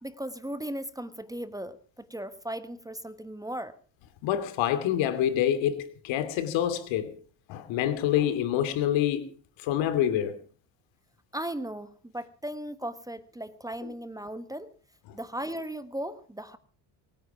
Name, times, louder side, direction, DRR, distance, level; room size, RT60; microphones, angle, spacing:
voice 1, 0.0-3.7 11.3-14.7 15.1-16.6, right 1 dB, 10° right, 1.2 m, -37 dB
voice 2, 4.2-7.2 7.5-9.3 9.6-10.4, left 11 dB, 75° left, 2.9 m, -26 dB
23.0 x 9.5 x 6.0 m
supercardioid pair, 95°, 45 cm